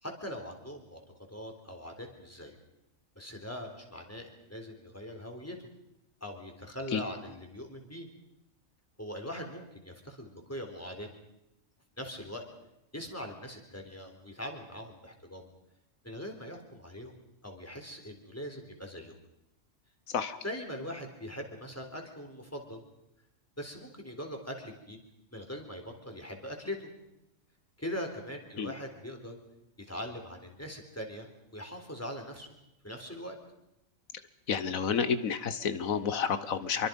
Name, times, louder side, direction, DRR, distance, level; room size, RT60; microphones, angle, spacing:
voice 1, 0.0-1.0 1.3-2.6 3.2-5.6 6.2-8.1 9.0-11.1 12.0-12.4 12.9-15.5 16.0-17.2 17.4-19.2 20.4-22.8 23.6-25.0 25.3-26.9 27.8-29.4 29.8-31.3 31.5-32.5 32.8-33.4, equal, 10° left, 3 dB, 3.8 m, -41 dB
voice 2, 20.1-20.4 28.6-28.7 34.5-36.9, left 6 dB, 85° left, 12 dB, 1.5 m, -30 dB
26.5 x 24.0 x 5.3 m, 0.85 s
omnidirectional pair, 1.4 m